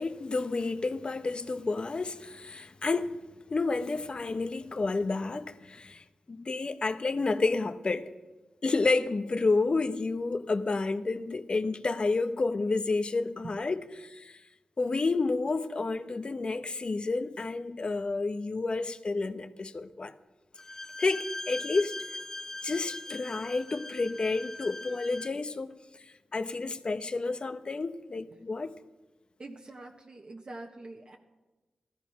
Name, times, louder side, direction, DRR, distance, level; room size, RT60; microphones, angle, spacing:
voice 1, 0.0-3.2 3.5-8.1 8.6-14.4 14.8-20.1 21.0-22.0 22.6-25.7 26.3-28.7, left 3 dB, 50° left, 0.9 m, -30 dB
Bowed string instrument, 20.6-25.4, left 1 dB, 20° left, 1.0 m, -40 dB
voice 2, 29.4-31.2, right 2 dB, 50° right, 1.4 m, -44 dB
15.0 x 13.0 x 5.9 m
cardioid pair, 50°, 2 cm